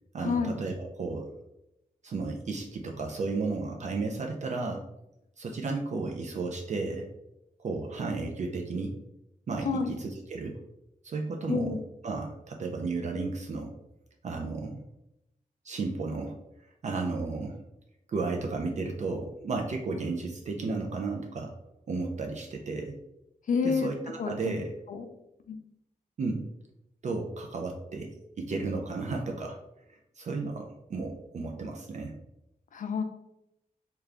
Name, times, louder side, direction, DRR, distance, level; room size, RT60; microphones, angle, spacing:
voice 1, 0.1-1.3 2.0-4.8 5.4-7.1 7.6-8.9 9.5-10.6 11.0-11.8 12.0-13.7 14.2-14.8 15.6-16.4 16.8-17.6 18.1-21.5 21.9-23.0 23.6-24.7 26.2-26.5 27.0-28.1 28.4-29.6 29.9-32.1, right 3 dB, 55° right, 2 dB, 0.4 m, -33 dB
voice 2, 11.5-11.8 23.5-23.9 24.2-24.5 24.9-25.1 25.5-25.6 32.7-33.0, left 5 dB, 60° left, 6 dB, 0.4 m, -28 dB
3.3 x 2.2 x 3.6 m, 0.86 s
wide cardioid pair, 135°, 15 cm